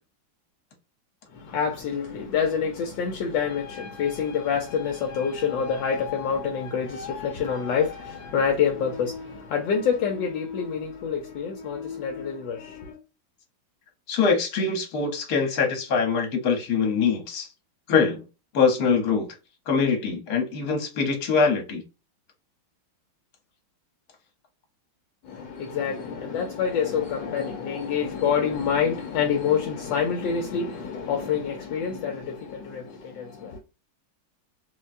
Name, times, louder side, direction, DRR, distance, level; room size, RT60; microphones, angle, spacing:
voice 1, 1.3-13.0 25.2-33.6, left 7 dB, 75° left, 1.3 m, -27 dB
voice 2, 14.1-17.5 17.9-18.2 18.5-19.3 19.7-21.8, left 5 dB, 60° left, 1.5 m, -23 dB
4.2 x 2.2 x 2.5 m
omnidirectional pair, 2.1 m